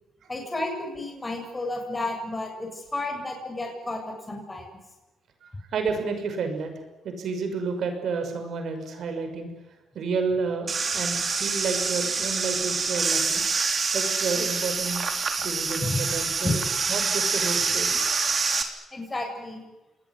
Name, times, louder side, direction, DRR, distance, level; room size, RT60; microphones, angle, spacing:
voice 1, 0.3-4.7 15.8-16.0 16.4-16.6 18.9-19.6, left 2 dB, 20° left, 2 dB, 7.4 m, -31 dB
voice 2, 5.4-9.5 9.9-13.4 13.9-16.6 16.9-18.0, right 4 dB, 65° right, 6 dB, 6.0 m, -31 dB
sound 1, 10.7-18.6, right 4 dB, 40° right, 3.6 m, -26 dB
27.5 x 19.5 x 9.8 m, 1.0 s
cardioid pair, 90°, 0 cm